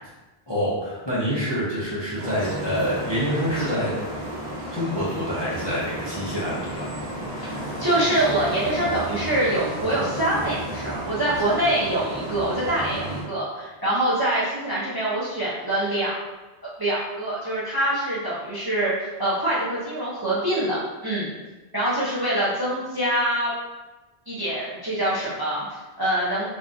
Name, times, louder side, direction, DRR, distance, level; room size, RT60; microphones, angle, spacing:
voice 1, 0.5-3.9 4.7-6.9, equal, 30° left, -8 dB, 0.5 m, -26 dB
sound 1, 2.2-13.2, right 1 dB, 45° right, 0.8 m, -32 dB
voice 2, 7.4-16.2 16.8-21.3 21.7-23.5 24.3-26.5, right 1 dB, 30° right, -8 dB, 0.5 m, -25 dB
3.5 x 2.3 x 2.5 m, 1.1 s
omnidirectional pair, 1.1 m